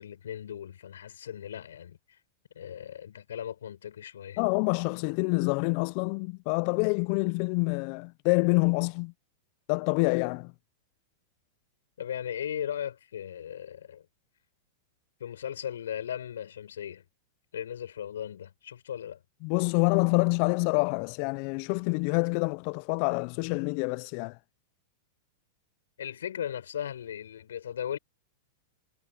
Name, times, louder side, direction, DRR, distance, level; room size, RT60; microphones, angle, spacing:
voice 1, 0.0-2.2 2.5-4.4 12.0-14.1 15.2-17.0 17.5-19.2 26.0-28.0, left 9 dB, 75° left, 7.8 m, -37 dB
voice 2, 4.4-9.1 9.7-10.5 19.4-24.4, left 32 dB, 50° left, 0.9 m, -27 dB
hypercardioid pair, 100°, 0 cm